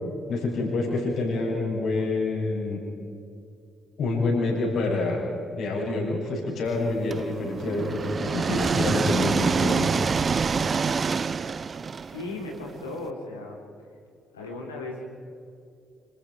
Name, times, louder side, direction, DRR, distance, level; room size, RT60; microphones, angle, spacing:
voice 1, 0.3-2.8 4.0-5.2 5.5-10.0, left 3 dB, 60° left, -2 dB, 7.9 m, -27 dB
sound 1, 7.1-13.0, right 5 dB, 40° right, 0.6 m, -26 dB
voice 2, 12.0-13.6 14.3-15.0, left 2 dB, 85° left, 0 dB, 3.8 m, -36 dB
28.5 x 27.0 x 4.9 m, 2.4 s
figure-of-eight pair, 45°, 0 cm